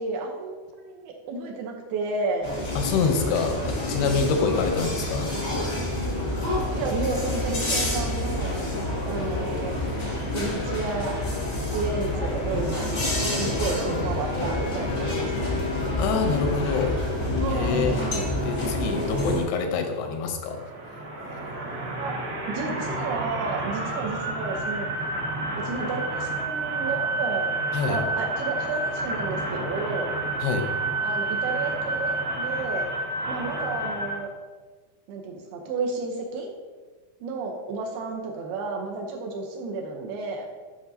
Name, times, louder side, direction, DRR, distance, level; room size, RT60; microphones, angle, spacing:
voice 1, 0.0-2.5 3.9-4.6 6.7-8.6 9.0-9.8 10.3-11.1 11.7-15.6 17.4-18.3 22.0-22.1 22.5-24.9 25.6-27.5 27.9-30.2 31.0-32.9 33.3-34.3 35.1-36.5 37.2-40.5, right 3 dB, 75° right, 1 dB, 2.5 m, -32 dB
sound 1, 2.4-19.4, left 1 dB, 65° left, 0.6 m, -28 dB
voice 2, 2.8-5.3 16.0-17.0 17.5-18.1 18.4-20.6 27.7-28.0 30.4-30.7, left 5 dB, 85° left, 4 dB, 2.6 m, -26 dB
sound 2, 20.5-34.2, right 2 dB, 60° right, 1.2 m, -30 dB
10.5 x 5.9 x 2.7 m, 1.3 s
omnidirectional pair, 4.8 m